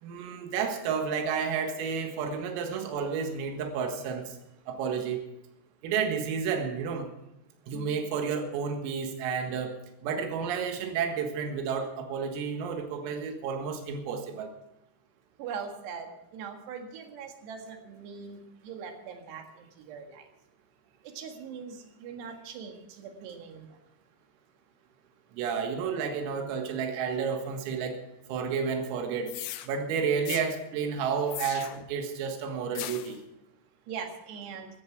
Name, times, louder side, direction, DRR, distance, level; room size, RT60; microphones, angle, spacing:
voice 1, 0.0-4.4 4.7-5.2 5.8-7.1 7.7-9.8 10.0-14.5 25.3-28.0 28.3-29.3 29.7-33.2, right 6 dB, 80° right, 4 dB, 4.4 m, -31 dB
voice 2, 15.4-18.4 18.6-19.4 19.8-20.2 21.2-23.7 33.9-34.7, right 6 dB, 65° right, 4 dB, 3.5 m, -41 dB
sound 1, 29.3-29.7 30.3-30.5 31.3-31.9 32.8-33.2, left 13 dB, 80° left, 2.6 m, -38 dB
16.0 x 13.5 x 4.7 m, 0.88 s
omnidirectional pair, 6.0 m